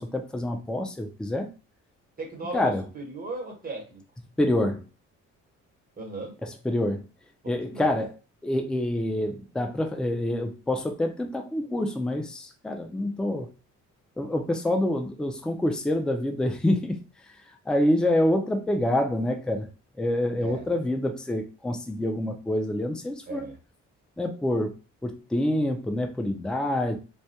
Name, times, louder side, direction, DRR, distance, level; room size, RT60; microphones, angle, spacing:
voice 1, 0.0-1.5 2.5-2.8 4.4-4.8 6.4-7.0 7.5-8.1 8.4-13.5 14.2-17.0 17.7-19.7 20.0-23.5 24.2-24.7 25.0-27.0, left 1 dB, 5° left, 5 dB, 0.3 m, -26 dB
voice 2, 2.2-4.0 6.0-6.3 7.4-7.9 20.4-20.7 23.3-23.6, right 3 dB, 30° right, 1 dB, 1.1 m, -37 dB
2.2 x 2.1 x 2.7 m, 0.32 s
cardioid pair, 90°, 30 cm